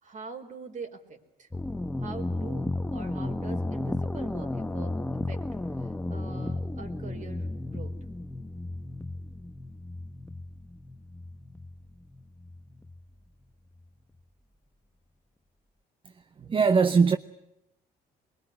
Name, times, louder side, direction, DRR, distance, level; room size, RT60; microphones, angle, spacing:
voice 1, 0.0-1.5 2.0-4.9 5.3-5.4 5.8-7.9 8.9-9.0, right 5 dB, 45° right, 4.2 m, -44 dB
sound 1, 1.5-13.0, left 2 dB, 10° left, 0.9 m, -34 dB
voice 2, 16.4-17.2, right 5 dB, 30° right, 0.9 m, -21 dB
23.0 x 22.0 x 9.8 m
cardioid pair, 110°, 17 cm